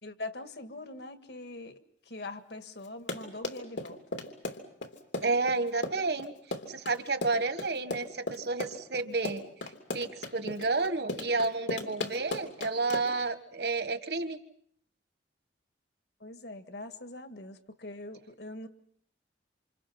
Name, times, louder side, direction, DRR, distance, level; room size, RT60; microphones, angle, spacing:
voice 1, 0.0-1.8 2.1-4.0 16.2-18.7, left 2 dB, 65° left, 8 dB, 1.8 m, -42 dB
Run, 2.8-13.3, left 2 dB, 90° left, 3.2 m, -36 dB
voice 2, 5.2-6.3 6.7-9.4 9.9-14.4, right 3 dB, 65° right, 10 dB, 1.6 m, -31 dB
28.0 x 27.5 x 5.9 m, 0.66 s
head